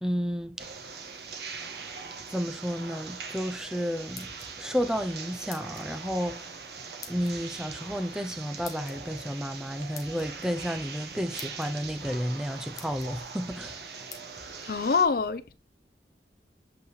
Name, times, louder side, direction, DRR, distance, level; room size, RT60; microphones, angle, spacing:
voice 1, 0.0-0.7 2.3-4.3 4.6-6.5 7.1-13.8, equal, 5° right, 0.5 m, -32 dB
sound 1, 0.6-15.0, right 5 dB, 65° right, 1.3 m, -42 dB
sound 2, 4.1-4.8 5.5-5.9 7.0-7.3 8.6-9.0 9.9-10.3 11.0-11.1 11.4-11.7 12.3-12.4 12.8-13.1 14.1-14.2, left 6 dB, 20° left, 0.8 m, -45 dB
sound 3, 4.2-6.5 6.8-9.4 9.7-9.8 10.0-12.3 12.6-14.8, equal, 50° right, 1.3 m, -55 dB
voice 2, 14.6-15.6, left 5 dB, 55° left, 0.5 m, -25 dB
8.3 x 4.0 x 3.1 m
head